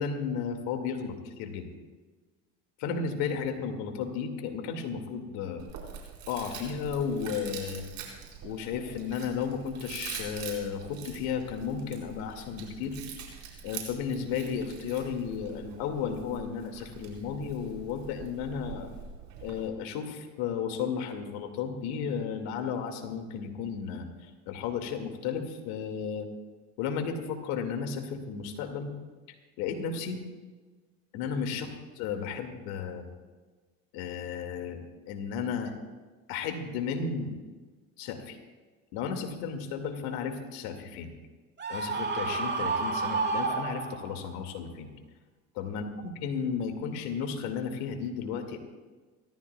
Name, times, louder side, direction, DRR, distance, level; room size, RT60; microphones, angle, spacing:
voice 1, 0.0-1.7 2.8-5.6 6.3-7.8 8.4-13.0 13.6-18.9 19.4-26.3 26.8-28.9 29.6-30.2 31.1-33.1 33.9-34.8 35.1-35.7 36.3-37.3 38.0-38.4 38.9-41.1 41.7-44.9 45.6-48.6, left 6 dB, 75° left, 5 dB, 2.2 m, -34 dB
Chewing mastication, 5.6-19.7, right 7 dB, 65° right, 4.6 m, -44 dB
Screaming, 41.6-44.3, right 4 dB, 30° right, 2.1 m, -30 dB
30.0 x 13.5 x 2.3 m, 1.3 s
hypercardioid pair, 70°, 36 cm